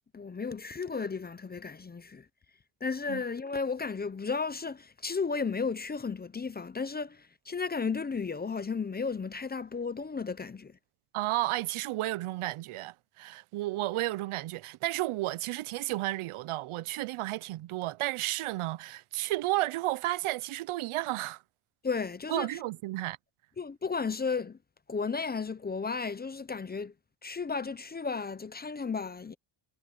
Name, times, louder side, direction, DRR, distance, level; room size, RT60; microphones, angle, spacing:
voice 1, 0.1-2.3 2.8-10.8 21.8-22.5 23.6-24.6 24.9-26.9 27.2-29.3, left 5 dB, 20° left, 0.6 m, -34 dB
voice 2, 11.1-21.4 22.3-23.2, right 17 dB, 80° right, 0.7 m, -32 dB
cardioid pair, 130°, 49 cm